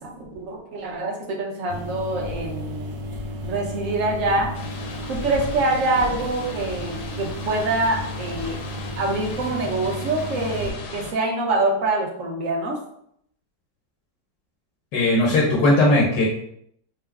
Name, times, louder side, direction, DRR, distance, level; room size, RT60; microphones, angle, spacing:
voice 1, 0.0-2.9 3.4-4.5 5.1-8.6 9.0-12.8, right 2 dB, 55° right, -1 dB, 1.1 m, -25 dB
sound 1, 1.7-10.7, left 1 dB, 85° right, 1.3 m, -33 dB
sound 2, 4.5-11.1, left 3 dB, 70° left, 1.2 m, -37 dB
voice 2, 14.9-16.3, left 1 dB, 90° left, -3 dB, 1.6 m, -18 dB
4.6 x 2.0 x 3.5 m, 0.70 s
omnidirectional pair, 1.9 m